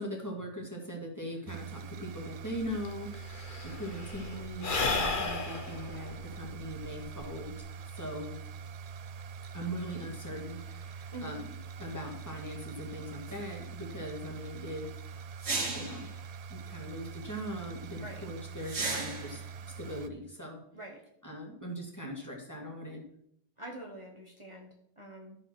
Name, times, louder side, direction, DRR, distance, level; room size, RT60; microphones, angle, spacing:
voice 1, 0.0-3.1 3.6-7.5 7.9-8.4 9.5-11.4 11.8-14.9 15.7-16.1 16.5-19.4 19.8-20.6 21.2-23.0, equal, 15° left, 0 dB, 2.3 m, -40 dB
sound 1, 1.5-20.1, right 6 dB, 50° right, 0.5 m, -44 dB
Sigh / Breathing, 2.6-2.7 2.8-7.6, left 3 dB, 50° left, 1.3 m, -34 dB
sound 2, 13.3-13.4 15.4-16.1 18.6-19.4, right 3 dB, 80° right, 2.0 m, -34 dB
voice 2, 23.6-25.4, right 1 dB, 30° right, 0 dB, 1.3 m, -45 dB
12.5 x 5.1 x 6.2 m, 0.71 s
omnidirectional pair, 1.1 m